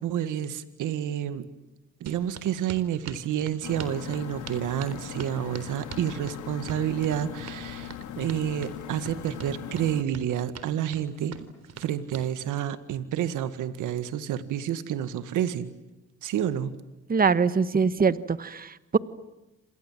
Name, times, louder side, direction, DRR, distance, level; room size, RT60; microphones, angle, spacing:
voice 1, 0.0-1.5 2.0-11.4 11.8-15.7 16.2-16.7, right 10 dB, 85° right, 12 dB, 1.9 m, -29 dB
sound 1, 2.1-12.3, right 6 dB, 55° right, 3.9 m, -43 dB
sound 2, 3.6-10.0, left 10 dB, 75° left, 3.5 m, -40 dB
voice 2, 17.1-19.0, right 5 dB, 30° right, 14 dB, 1.3 m, -23 dB
28.5 x 27.5 x 7.6 m, 0.99 s
cardioid pair, 90°, 30 cm